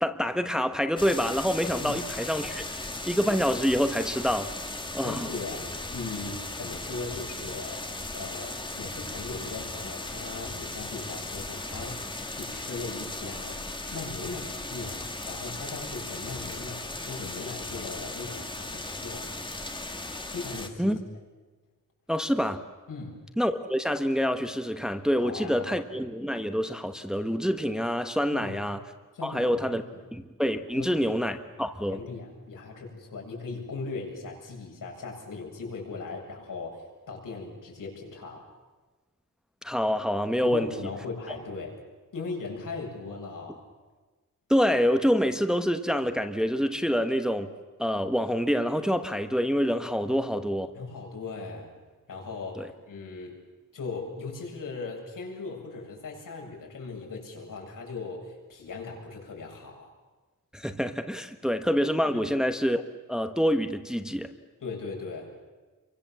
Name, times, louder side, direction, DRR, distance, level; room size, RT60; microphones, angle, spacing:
voice 1, 0.0-4.5 4.9-5.3 20.8-21.0 22.1-22.6 23.4-28.8 29.2-29.8 30.1-32.0 39.6-40.7 44.5-47.5 47.8-50.7 52.6-52.7 60.5-64.3, equal, ahead, 7 dB, 1.1 m, -26 dB
sound 1, 1.0-20.7, left 2 dB, 15° left, 1.9 m, -37 dB
voice 2, 5.0-12.0 12.3-19.3 20.3-21.0 22.9-23.2 25.2-25.7 28.3-28.6 29.1-30.1 30.7-31.1 31.9-38.5 40.4-41.8 42.1-43.7 50.0-50.3 50.7-51.7 52.1-53.4 53.7-59.9 64.6-65.3, left 4 dB, 75° left, 0 dB, 7.7 m, -39 dB
29.5 x 24.0 x 7.5 m, 1.3 s
wide cardioid pair, 150°, 32 cm